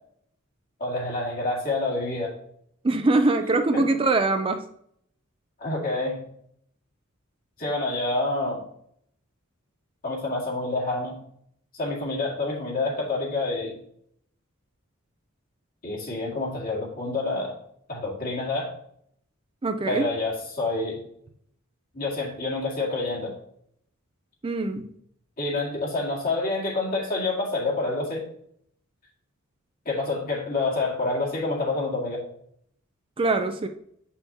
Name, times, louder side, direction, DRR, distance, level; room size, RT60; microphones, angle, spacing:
voice 1, 0.8-2.4 3.7-3.9 5.6-6.2 7.6-8.6 10.0-11.2 11.7-13.8 15.8-17.6 17.9-18.7 19.9-21.0 21.9-23.3 25.4-28.3 29.9-32.2, left 2 dB, 45° left, -3 dB, 2.0 m, -28 dB
voice 2, 2.8-4.6 19.6-20.1 24.4-24.9 33.2-33.7, right 3 dB, 25° right, 7 dB, 0.4 m, -23 dB
8.4 x 5.7 x 2.8 m, 0.68 s
head